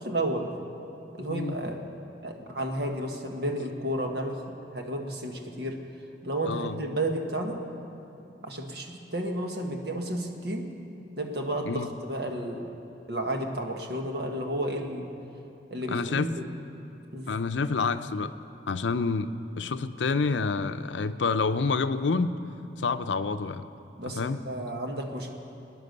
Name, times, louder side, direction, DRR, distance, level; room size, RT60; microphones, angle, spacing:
voice 1, 0.0-0.5 1.1-1.8 2.2-4.4 4.7-5.8 6.2-7.6 8.4-10.7 11.2-12.7 13.1-15.1 15.7-16.4 17.1-17.3 24.0-25.3, right 1 dB, 60° right, 3 dB, 1.5 m, -32 dB
voice 2, 6.4-6.8 11.7-11.9 15.9-16.3 17.3-18.3 18.7-19.3 19.6-22.3 22.8-23.7 24.2-24.4, left 4 dB, 85° left, 11 dB, 0.6 m, -28 dB
20.0 x 9.9 x 6.7 m, 2.8 s
head